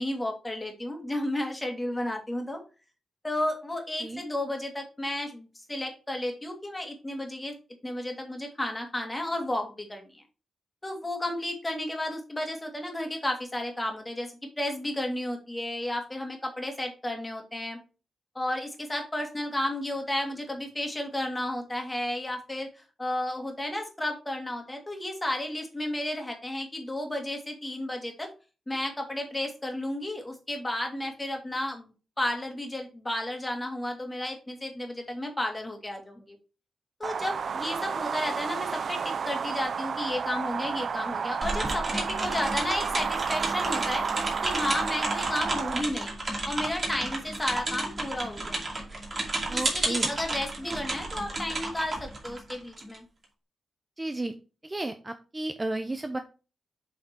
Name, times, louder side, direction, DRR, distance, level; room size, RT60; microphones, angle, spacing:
voice 1, 0.0-2.6 3.2-7.5 7.8-10.2 10.8-17.8 18.3-28.3 28.7-36.4 37.0-44.1 44.4-46.1 46.5-48.6 49.5-53.0, left 1 dB, 15° left, 3 dB, 2.1 m, -33 dB
sound 1, 37.0-45.8, right 6 dB, 55° right, 0.4 m, -31 dB
sound 2, 41.4-53.0, right 2 dB, 35° right, 2.5 m, -32 dB
voice 2, 49.5-50.1 50.6-50.8 54.0-54.4 54.6-56.2, right 2 dB, 20° right, 7 dB, 0.6 m, -33 dB
7.7 x 4.2 x 4.4 m, 0.33 s
wide cardioid pair, 115°, 0 cm